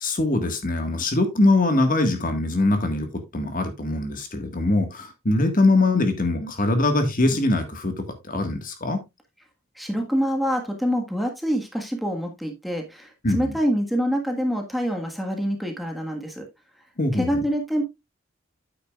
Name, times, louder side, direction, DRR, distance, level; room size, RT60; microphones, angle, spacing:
voice 1, 0.0-9.0 13.2-13.5 17.0-17.4, left 2 dB, 45° left, 1.7 m, -22 dB
voice 2, 9.7-16.5 17.1-17.8, equal, ahead, 1.5 m, -26 dB
9.1 x 8.7 x 2.4 m
head